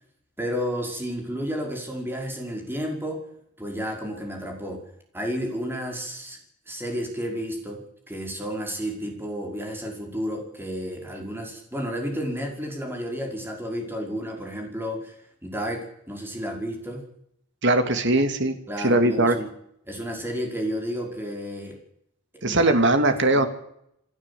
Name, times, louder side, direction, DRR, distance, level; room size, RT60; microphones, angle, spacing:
voice 1, 0.4-3.2 3.6-4.8 5.1-6.4 6.7-17.1 18.7-19.5 19.9-21.8 22.3-22.8 23.1-23.5, equal, 10° right, 2 dB, 5.2 m, -32 dB
voice 2, 17.6-19.3 22.4-23.5, right 2 dB, 55° right, 8 dB, 2.6 m, -20 dB
28.0 x 12.5 x 8.5 m, 0.72 s
head